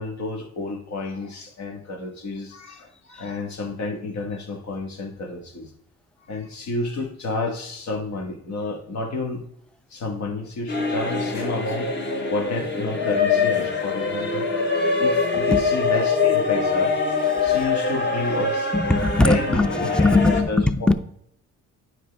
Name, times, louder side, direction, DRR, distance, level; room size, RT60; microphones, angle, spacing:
voice 1, 0.0-5.7 6.3-9.4 9.9-14.6 15.0-16.9 17.4-18.7 19.2-20.9, left 2 dB, 65° left, 1.7 m, -30 dB
sound 1, 10.7-20.4, left 4 dB, 35° left, 1.4 m, -23 dB
voice 2, 18.7-20.9, left 2 dB, 5° left, 0.5 m, -20 dB
9.2 x 4.8 x 3.4 m
cardioid pair, 90°, 30 cm